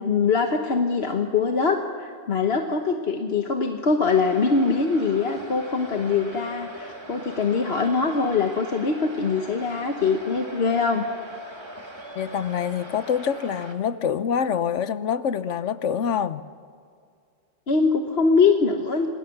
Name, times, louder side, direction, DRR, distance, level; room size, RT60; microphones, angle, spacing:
voice 1, 0.0-11.1 17.7-19.1, left 4 dB, 60° left, 4 dB, 1.4 m, -23 dB
sound 1, 4.0-13.7, equal, 20° right, 2.4 m, -41 dB
voice 2, 12.1-16.4, left 7 dB, 85° left, 13 dB, 1.2 m, -26 dB
27.5 x 20.5 x 6.0 m, 2.2 s
omnidirectional pair, 1.2 m